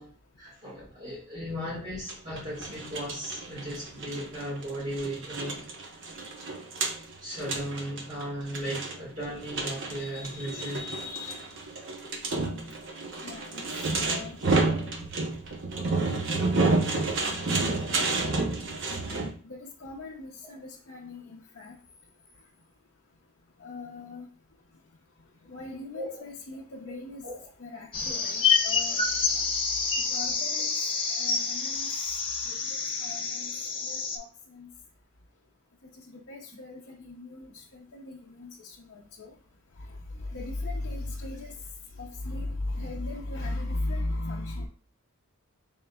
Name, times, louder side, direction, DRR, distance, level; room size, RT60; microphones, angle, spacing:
voice 1, 0.0-5.6 7.2-10.9 25.9-26.2 27.2-27.4 28.1-28.2, equal, 35° right, -7 dB, 1.8 m, -36 dB
sound 1, 2.1-19.3, right 3 dB, 60° right, 0.8 m, -30 dB
voice 2, 9.9-11.5 13.2-13.6 14.0-14.4 17.8-18.1 19.4-21.7 23.6-24.3 25.5-27.3 27.6-29.1 30.0-30.7 31.1-31.9 32.5-33.5 33.8-34.7 36.1-39.3 39.8-41.5 42.0-44.7, left 2 dB, 60° left, -3 dB, 0.6 m, -38 dB
sound 2, 27.9-34.2, left 5 dB, 25° left, 0.8 m, -28 dB
5.2 x 3.6 x 2.3 m, 0.41 s
head